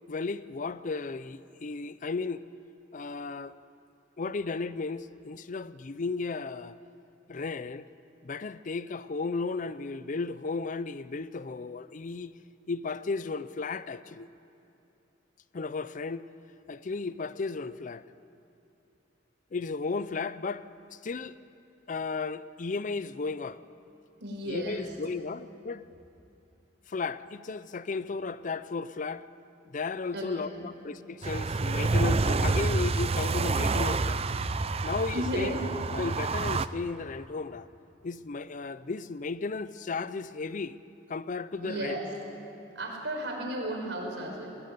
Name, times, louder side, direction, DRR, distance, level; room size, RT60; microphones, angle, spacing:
voice 1, 0.1-2.4 2.9-3.6 4.2-6.8 7.3-7.9 8.2-12.3 12.7-14.3 15.5-16.2 16.7-18.0 19.5-21.4 21.9-23.6 24.5-25.8 26.9-29.3 29.7-34.2 34.8-35.5 35.9-37.7 38.0-40.8 41.1-42.0, left 4 dB, 45° left, 0.5 m, -34 dB
voice 2, 24.2-24.8 30.1-30.7 34.7-35.6 41.6-42.1 42.8-44.6, right 1 dB, 80° right, 5.5 m, -34 dB
sound 1, 31.2-36.7, right 3 dB, 35° right, 0.6 m, -28 dB
20.0 x 19.0 x 9.5 m
head